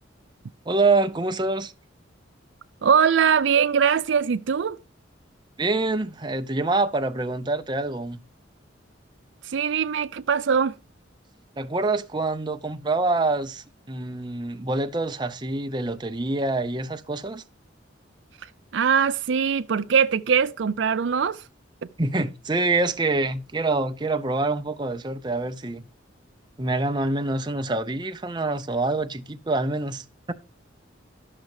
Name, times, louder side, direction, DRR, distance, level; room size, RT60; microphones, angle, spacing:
voice 1, 0.6-1.7 5.6-8.2 11.6-17.4 22.0-25.8 26.6-30.3, right 2 dB, 25° right, 0.7 m, -26 dB
voice 2, 2.8-4.8 9.4-10.7 18.7-21.4, right 7 dB, 70° right, 0.4 m, -21 dB
12.0 x 6.5 x 4.8 m
head